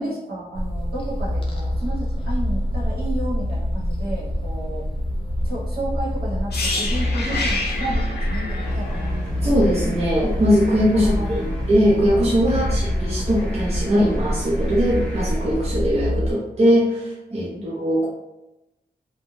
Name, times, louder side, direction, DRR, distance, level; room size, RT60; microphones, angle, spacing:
voice 1, 0.0-4.9 5.4-9.5 10.9-11.6 12.4-12.8 17.3-17.7, right 1 dB, 70° right, -6 dB, 1.2 m, -32 dB
sound 1, 0.5-16.3, equal, 35° left, 0.5 m, -25 dB
sound 2, 6.5-10.4 10.6-10.8, left 2 dB, 90° left, 0.7 m, -29 dB
sound 3, 8.6-16.3, equal, 5° left, 0.8 m, -37 dB
voice 2, 9.4-18.1, equal, 40° right, -5 dB, 0.5 m, -20 dB
2.6 x 2.2 x 3.1 m, 0.97 s
wide cardioid pair, 140°, 17 cm